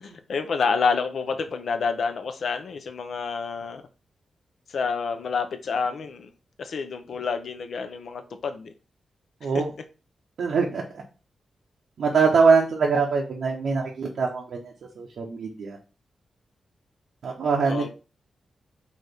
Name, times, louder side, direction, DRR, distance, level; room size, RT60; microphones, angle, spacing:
voice 1, 0.0-3.8 4.7-6.3 6.6-8.7 9.5-9.6 17.7-17.9, left 5 dB, 75° left, 0.5 m, -28 dB
voice 2, 9.4-9.7 10.4-10.8 12.0-15.8 17.2-17.9, right 5 dB, 75° right, 0.6 m, -23 dB
4.1 x 2.4 x 3.3 m
cardioid pair, 65°, 0 cm